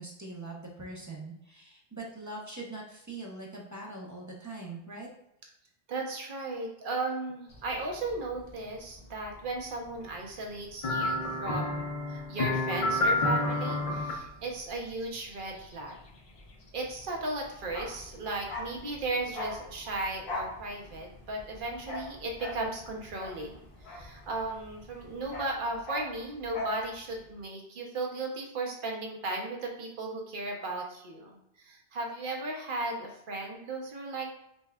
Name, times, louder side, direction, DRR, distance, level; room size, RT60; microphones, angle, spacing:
voice 1, 0.0-5.1, right 2 dB, 25° right, -3 dB, 0.4 m, -42 dB
voice 2, 5.9-16.0 16.7-34.4, right 2 dB, 55° right, 1 dB, 0.8 m, -36 dB
sound 1, 10.8-14.1 16.9-17.0, left 2 dB, 50° left, 0.4 m, -29 dB
Bark, 17.6-24.7 24.9-26.9 27.1-27.3, left 2 dB, 70° left, 1.1 m, -40 dB
5.3 x 2.2 x 2.2 m, 0.81 s
omnidirectional pair, 1.1 m